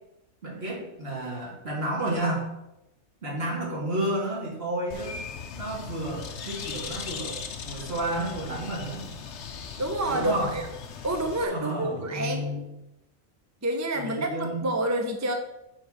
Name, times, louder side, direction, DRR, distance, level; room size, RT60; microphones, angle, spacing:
voice 1, 0.4-2.5 3.2-5.2 5.5-9.1 10.1-10.5 11.5-12.6 13.9-14.6, right 1 dB, 45° right, -2 dB, 2.4 m, -31 dB
Bird, 4.9-11.4, left 6 dB, 60° left, 1.0 m, -38 dB
voice 2, 9.8-10.7 11.0-12.5 13.6-15.3, right 1 dB, 20° right, 4 dB, 0.5 m, -28 dB
8.5 x 3.9 x 6.3 m, 0.90 s
omnidirectional pair, 1.4 m